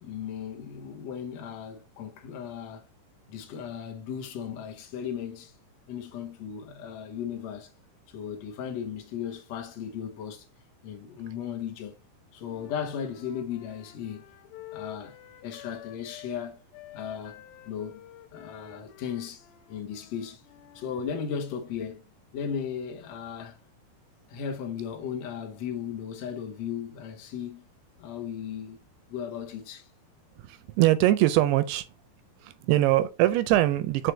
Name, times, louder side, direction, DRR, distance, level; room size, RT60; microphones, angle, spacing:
voice 1, 0.0-2.9 3.3-5.6 5.9-7.7 8.1-10.5 10.8-12.0 12.3-14.2 14.7-15.2 15.4-16.6 16.9-18.0 18.3-20.4 20.7-22.0 22.3-23.6 24.3-27.7 28.0-28.8 29.1-29.9, left 8 dB, 65° left, 1.7 m, -36 dB
Wind instrument woodwind instrument, 12.5-16.4 16.7-21.1, left 13 dB, 85° left, 2.7 m, -49 dB
voice 2, 30.4-31.9 32.4-34.1, right 15 dB, 85° right, 2.5 m, -22 dB
6.1 x 4.7 x 3.3 m
omnidirectional pair, 4.7 m